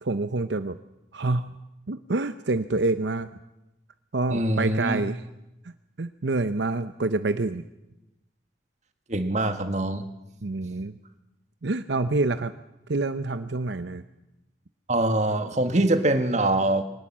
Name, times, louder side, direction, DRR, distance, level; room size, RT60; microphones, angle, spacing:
voice 1, 0.0-0.8 1.1-1.5 1.9-3.3 4.1-5.2 5.6-5.7 6.0-7.7 10.4-11.0 11.6-12.5 12.9-14.0, right 2 dB, 70° right, 11 dB, 0.8 m, -27 dB
voice 2, 4.3-5.0 9.1-10.1 14.9-16.8, right 1 dB, 40° right, 8 dB, 1.7 m, -23 dB
23.0 x 19.0 x 7.4 m, 0.92 s
head